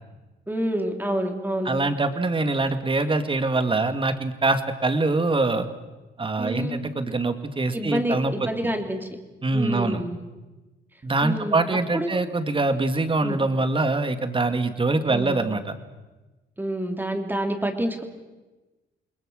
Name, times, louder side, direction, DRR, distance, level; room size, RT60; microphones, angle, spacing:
voice 1, 0.5-1.7 6.4-6.7 7.7-9.1 9.5-10.2 11.2-11.6 11.9-12.2 13.2-13.4 15.1-15.4 16.6-18.0, right 1 dB, 10° right, 4 dB, 3.3 m, -28 dB
voice 2, 1.7-5.7 6.2-8.5 9.4-10.0 11.0-15.7, right 3 dB, 25° right, 9 dB, 2.2 m, -24 dB
28.0 x 20.5 x 6.5 m, 1.1 s
cardioid pair, 90°, 20 cm